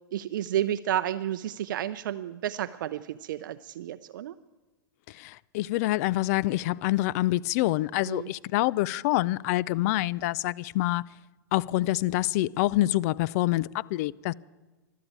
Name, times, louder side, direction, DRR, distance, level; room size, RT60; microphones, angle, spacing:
voice 1, 0.1-4.3 8.1-8.3, right 11 dB, 70° right, 0.5 m, -31 dB
voice 2, 5.1-11.0 11.5-14.3, left 17 dB, 50° left, 0.4 m, -26 dB
13.0 x 12.5 x 8.6 m
hypercardioid pair, 125°, 11 cm